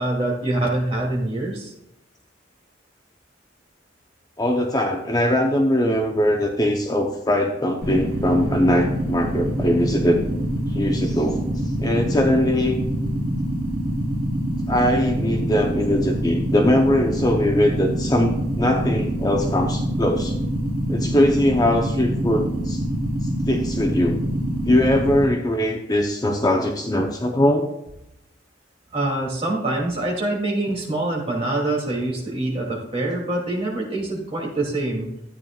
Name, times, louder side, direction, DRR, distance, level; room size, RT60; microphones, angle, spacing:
voice 1, 0.0-1.7 28.9-35.1, right 2 dB, 30° right, -3 dB, 2.7 m, -25 dB
voice 2, 4.4-10.2 10.7-11.4 11.8-12.8 14.7-20.3 20.9-22.8 23.5-24.2 24.7-27.7, left 1 dB, 20° left, 2 dB, 0.7 m, -21 dB
sound 1, 7.8-25.3, right 1 dB, 50° right, 3.0 m, -25 dB
13.5 x 8.8 x 2.4 m, 0.85 s
head